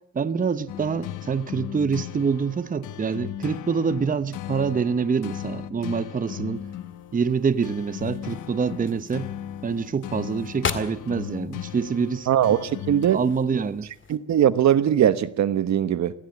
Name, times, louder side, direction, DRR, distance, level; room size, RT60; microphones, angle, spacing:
voice 1, 0.1-6.6 7.1-9.3 9.6-12.3 13.1-13.9, right 5 dB, 25° right, 0.9 m, -26 dB
sound 1, 0.7-13.1, left 11 dB, 80° left, 1.2 m, -37 dB
sound 2, 6.5-14.2, left 5 dB, 40° left, 2.2 m, -39 dB
voice 2, 12.3-13.2 14.1-16.1, right 10 dB, 65° right, 1.2 m, -20 dB
19.5 x 16.0 x 8.6 m
cardioid pair, 90°, 30 cm